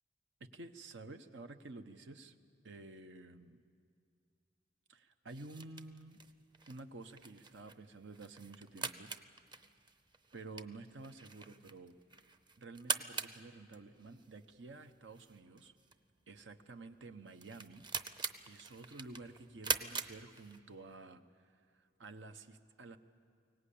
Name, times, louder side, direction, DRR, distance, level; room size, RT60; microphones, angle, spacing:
voice 1, 0.4-2.3 2.6-3.6 4.9-6.2 6.7-9.1 10.3-12.0 12.6-15.7 16.3-23.0, right 3 dB, 90° right, 8 dB, 1.0 m, -51 dB
sound 1, 5.3-20.9, right 4 dB, 25° right, 0.7 m, -44 dB
23.5 x 18.0 x 8.6 m, 2.3 s
head